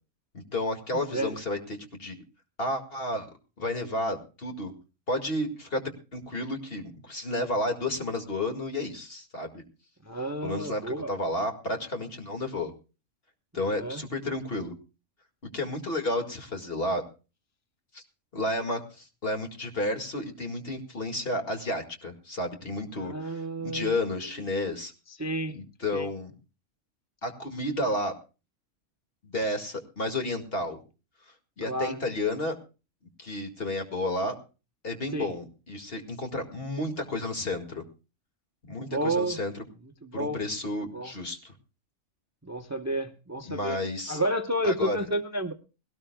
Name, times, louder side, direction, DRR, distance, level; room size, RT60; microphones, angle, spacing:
voice 1, 0.5-2.2 2.6-3.3 3.6-4.7 5.1-5.8 6.1-9.6 10.4-12.7 13.5-14.7 15.5-17.0 17.9-18.0 18.3-24.9 25.5-26.3 27.2-28.1 29.2-30.8 31.6-32.6 33.2-34.3 34.8-37.8 38.7-39.6 40.1-41.5 43.5-44.2 44.6-45.0, left 1 dB, 50° left, 4 dB, 2.3 m, -31 dB
voice 2, 10.1-11.1 13.7-14.0 23.0-24.0 25.2-25.6 25.9-26.1 31.7-32.0 35.1-35.3 38.9-39.4 40.1-40.4 40.9-41.1 42.5-43.8 44.1-45.5, right 1 dB, 15° right, 7 dB, 0.7 m, -30 dB
20.5 x 18.0 x 2.2 m, 0.33 s
omnidirectional pair, 1.3 m